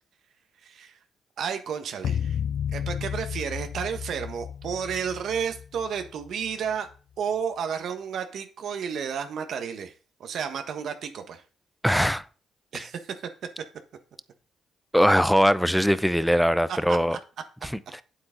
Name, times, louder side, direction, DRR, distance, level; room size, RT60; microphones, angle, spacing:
voice 1, 0.6-1.0 1.4-2.4 2.7-6.9 7.2-9.9 10.2-11.4 12.7-13.2 16.9-17.0, right 7 dB, 65° right, 1.3 m, -31 dB
sound 1, 2.0-6.5, left 8 dB, 65° left, 0.4 m, -32 dB
voice 2, 11.8-12.2 12.7-12.9 14.9-17.2 17.6-18.0, equal, ahead, 0.6 m, -21 dB
8.7 x 8.0 x 3.9 m
cardioid pair, 90°, 0 cm